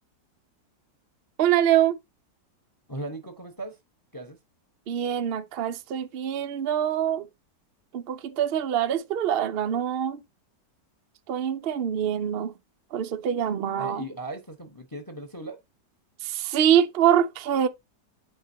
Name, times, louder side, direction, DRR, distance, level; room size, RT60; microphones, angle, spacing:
voice 1, 1.4-2.0 4.9-7.3 7.9-10.2 11.3-12.5 12.9-14.0 16.2-17.7, right 10 dB, 75° right, 0.5 m, -24 dB
voice 2, 2.9-3.8 4.1-4.4 13.8-15.6, right 1 dB, 15° left, 0.7 m, -37 dB
8.8 x 4.8 x 2.8 m
omnidirectional pair, 1.9 m